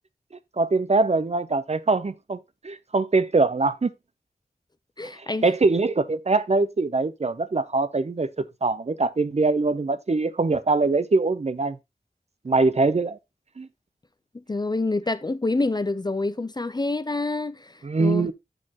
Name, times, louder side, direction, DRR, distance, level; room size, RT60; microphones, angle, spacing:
voice 1, 0.6-2.4 2.6-3.9 5.4-11.8 12.4-13.2 13.6-13.7 17.8-18.3, right 3 dB, 45° right, 0.5 m, -23 dB
voice 2, 5.0-5.5 14.5-17.7 18.0-18.3, left 2 dB, 25° left, 0.4 m, -27 dB
6.5 x 6.4 x 2.9 m
wide cardioid pair, 65°, 16 cm